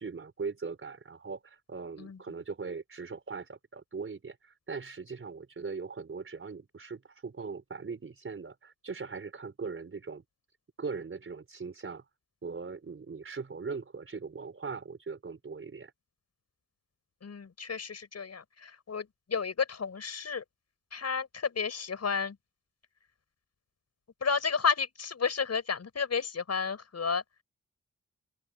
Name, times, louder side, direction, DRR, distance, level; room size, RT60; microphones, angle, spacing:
voice 1, 0.0-10.2 10.8-12.0 12.4-15.9, right 5 dB, 40° right, 4.9 m, -40 dB
voice 2, 17.2-20.4 20.9-22.4 24.2-27.2, left 5 dB, 55° left, 7.5 m, -32 dB
open air
wide cardioid pair, 120°, 31 cm